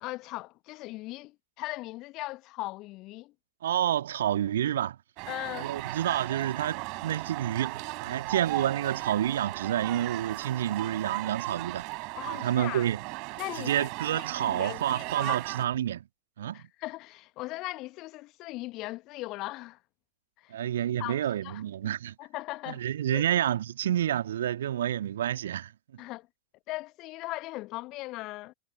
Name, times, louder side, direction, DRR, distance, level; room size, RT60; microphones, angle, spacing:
voice 1, 0.0-3.3 5.3-5.7 12.2-12.9 13.4-15.5 16.5-19.8 20.4-20.5 21.0-21.6 22.2-22.8 23.1-23.2 26.0-26.3 26.7-28.5, left 19 dB, 40° left, 1.4 m, -39 dB
voice 2, 3.6-5.0 5.6-11.9 12.3-13.0 13.6-16.0 16.4-16.6 20.5-22.1 22.7-25.7, right 11 dB, 60° right, 2.0 m, -29 dB
sound 1, 5.2-15.7, right 28 dB, 45° right, 6.0 m, -36 dB
figure-of-eight pair, 90°, 0 cm